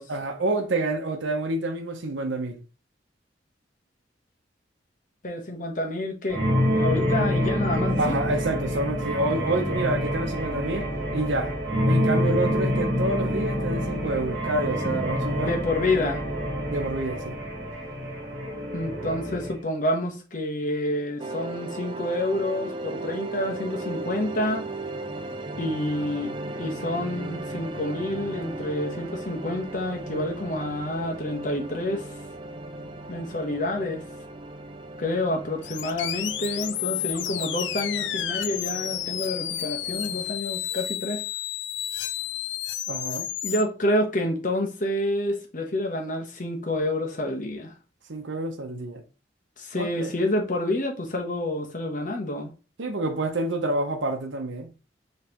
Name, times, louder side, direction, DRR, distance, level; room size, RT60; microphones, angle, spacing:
voice 1, 0.1-2.6 8.0-11.5 11.8-15.6 16.7-17.4 42.9-43.3 48.1-49.0 49.8-50.1 52.8-54.7, right 2 dB, 90° right, 0.8 m, -28 dB
voice 2, 5.2-6.5 6.8-8.2 14.8-15.0 15.4-16.2 18.7-24.7 25.6-32.1 33.1-34.0 35.0-41.2 43.4-47.7 49.6-52.5, left 1 dB, 45° left, 1.1 m, -28 dB
sound 1, 6.3-19.6, equal, 60° right, 2.0 m, -27 dB
sound 2, 21.2-40.2, right 2 dB, 25° right, 0.4 m, -37 dB
sound 3, 35.6-43.6, left 11 dB, 75° left, 0.4 m, -31 dB
5.2 x 3.3 x 3.0 m
head